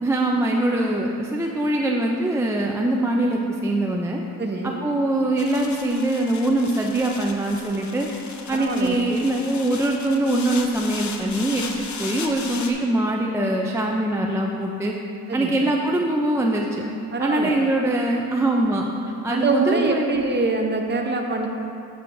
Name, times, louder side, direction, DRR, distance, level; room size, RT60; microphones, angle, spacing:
voice 1, 0.0-4.2 4.6-8.1 8.5-14.9 15.3-16.8 17.2-18.8 19.2-20.1, right 1 dB, 10° right, 0 dB, 0.3 m, -23 dB
voice 2, 4.4-4.8 8.5-9.0 15.3-15.6 17.1-17.6 19.3-21.5, right 3 dB, 30° right, 2 dB, 0.7 m, -24 dB
sound 1, 5.4-12.7, left 5 dB, 50° left, 0.6 m, -36 dB
10.0 x 6.3 x 2.6 m, 2.8 s
cardioid pair, 125°, 38 cm